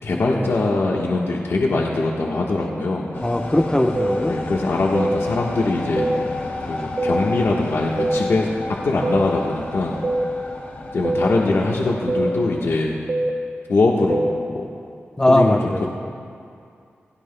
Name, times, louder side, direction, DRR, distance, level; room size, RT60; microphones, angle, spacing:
voice 1, 0.0-3.1 4.3-6.1 6.7-8.5 8.8-10.0 10.9-13.0 13.7-14.7 15.3-15.6, left 2 dB, 75° left, -2 dB, 1.3 m, -22 dB
sound 1, 3.1-12.7, left 2 dB, 50° left, 2.2 m, -32 dB
voice 2, 3.2-4.7 15.2-15.9, left 1 dB, 15° left, 4 dB, 0.9 m, -20 dB
sound 2, 3.9-4.1 4.9-5.2 6.0-6.2 7.0-7.2 8.0-8.2 9.0-9.2 10.0-10.2 11.0-11.3 12.1-12.3 13.1-13.3 14.1-14.3, right 2 dB, 50° right, 1.4 m, -22 dB
26.5 x 16.5 x 2.3 m, 2.5 s
cardioid pair, 70°, 4 cm